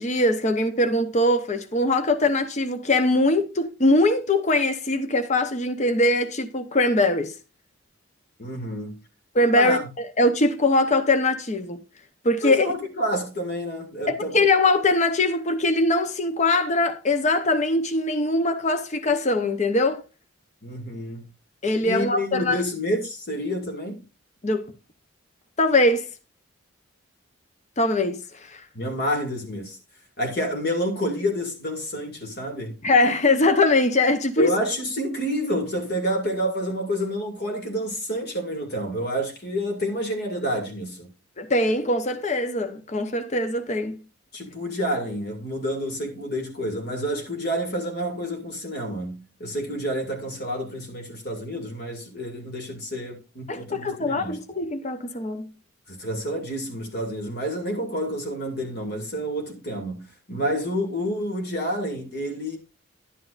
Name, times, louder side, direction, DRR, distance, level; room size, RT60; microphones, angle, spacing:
voice 1, 0.0-7.3 9.3-11.8 12.2-12.6 14.1-20.0 21.6-22.6 24.4-24.7 25.6-26.1 27.8-28.6 32.8-34.6 41.4-44.0 53.5-55.5, left 2 dB, 35° left, 0.8 m, -22 dB
voice 2, 8.4-8.9 9.5-9.8 12.4-14.4 20.6-21.2 21.8-24.0 28.7-29.8 30.2-32.8 34.4-41.1 44.3-54.4 55.9-62.6, equal, 55° left, 2.3 m, -29 dB
11.0 x 9.3 x 2.5 m
head